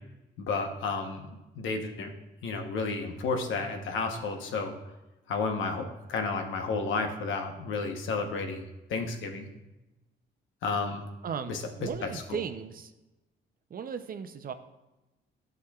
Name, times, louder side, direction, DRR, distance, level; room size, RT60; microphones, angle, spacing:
voice 1, 0.4-1.3 1.5-2.1 2.4-4.7 5.3-9.5 10.6-11.0 11.5-12.4, left 4 dB, 80° left, 4 dB, 1.1 m, -32 dB
voice 2, 11.2-12.9 13.7-14.5, right 7 dB, 45° right, 9 dB, 0.6 m, -36 dB
11.5 x 6.3 x 2.4 m, 1.0 s
cardioid pair, 90°, 20 cm